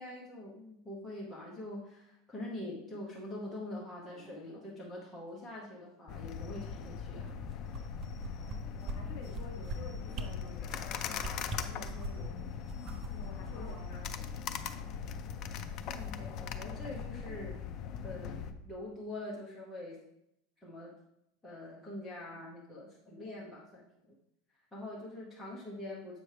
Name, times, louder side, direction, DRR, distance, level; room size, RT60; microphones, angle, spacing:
voice 1, 0.0-7.4 7.7-7.8 13.5-14.1 15.9-17.6 18.0-20.0 20.6-20.9 21.4-23.8 24.7-26.2, left 1 dB, 5° left, -6 dB, 0.9 m, -44 dB
sound 1, 6.1-18.5, left 7 dB, 30° left, 0.4 m, -40 dB
sound 2, 7.5-8.6 8.9-9.0 9.3-9.8 10.1-10.3 10.7-10.9 11.2-12.3 12.7-14.3 14.6-14.7, right 3 dB, 25° right, 0.5 m, -40 dB
voice 2, 8.6-12.7 13.1-14.7, left 3 dB, 50° left, 1 dB, 1.4 m, -51 dB
7.7 x 5.9 x 3.3 m, 0.81 s
supercardioid pair, 175°, 0 cm